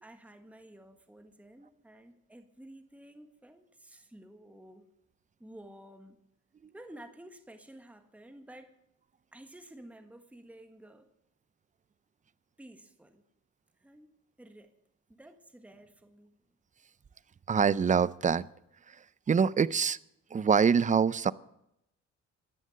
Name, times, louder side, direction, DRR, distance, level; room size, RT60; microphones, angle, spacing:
voice 1, 0.0-4.9 5.4-6.2 6.7-8.8 9.3-11.1 12.6-13.2 13.8-14.7 15.1-16.4, right 1 dB, 5° right, 1.5 m, -52 dB
voice 2, 17.5-18.5 19.3-20.0 20.3-21.3, right 6 dB, 25° right, 0.5 m, -24 dB
15.5 x 11.0 x 6.5 m
cardioid pair, 90°, 30 cm